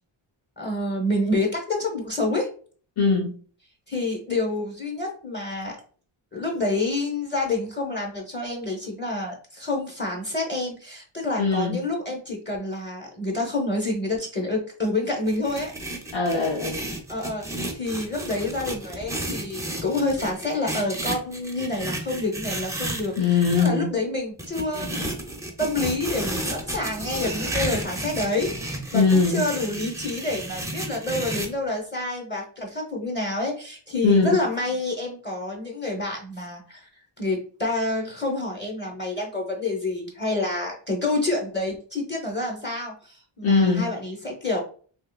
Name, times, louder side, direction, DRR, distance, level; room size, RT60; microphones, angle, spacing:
voice 1, 0.6-2.5 3.9-5.8 6.3-15.7 17.1-25.3 25.6-28.5 28.9-36.9 37.2-44.6, left 2 dB, 20° left, 0 dB, 0.8 m, -28 dB
voice 2, 3.0-3.3 11.4-11.8 16.1-16.8 23.2-23.9 28.9-29.4 34.0-34.4 43.4-43.9, left 4 dB, 75° left, -2 dB, 0.8 m, -20 dB
sound 1, 15.3-23.7 24.4-31.5, right 1 dB, 5° right, 0.5 m, -32 dB
3.6 x 2.8 x 2.3 m, 0.42 s
wide cardioid pair, 115°, 49 cm